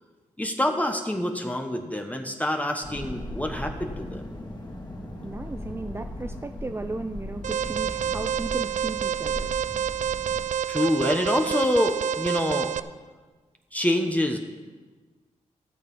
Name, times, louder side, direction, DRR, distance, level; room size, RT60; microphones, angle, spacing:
voice 1, 0.4-4.3 10.7-12.7 13.7-14.4, left 1 dB, 10° left, 4 dB, 1.1 m, -26 dB
sound 1, 2.8-10.5, left 1 dB, 30° left, 2.4 m, -38 dB
voice 2, 5.2-9.5, right 2 dB, 20° right, 7 dB, 0.5 m, -35 dB
Alarm, 7.4-12.8, right 9 dB, 65° right, 0.5 m, -28 dB
15.0 x 6.6 x 5.5 m, 1.4 s
cardioid pair, 55°, 13 cm